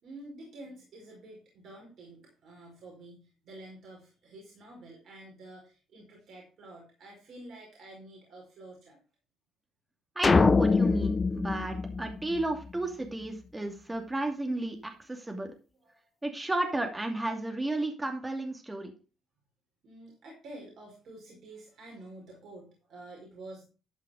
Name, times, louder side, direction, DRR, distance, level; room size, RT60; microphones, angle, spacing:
voice 1, 0.0-9.0 15.0-15.1 15.4-16.0 19.8-23.6, right 1 dB, 65° right, -1 dB, 5.0 m, -49 dB
sound 1, 10.2-12.7, left 4 dB, 40° left, 0.4 m, -24 dB
voice 2, 10.2-15.5 16.2-18.9, right 2 dB, 20° right, 3 dB, 2.6 m, -33 dB
12.5 x 5.6 x 5.1 m, 0.35 s
supercardioid pair, 60°, 0 cm